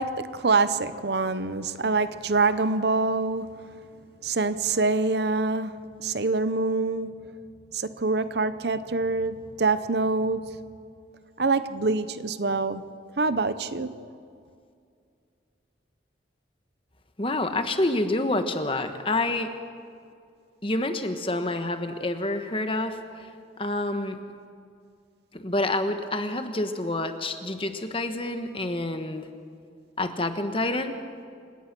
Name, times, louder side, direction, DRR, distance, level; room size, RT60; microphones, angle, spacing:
voice 1, 0.0-3.5 4.2-5.8 6.0-7.1 7.7-10.6 11.4-12.9 13.2-14.1, right 3 dB, 60° right, 13 dB, 0.8 m, -25 dB
voice 2, 17.2-19.5 20.6-23.0 23.6-24.2 25.3-29.3 30.0-30.9, left 2 dB, 30° left, 7 dB, 1.3 m, -28 dB
28.0 x 17.5 x 6.1 m, 2.3 s
head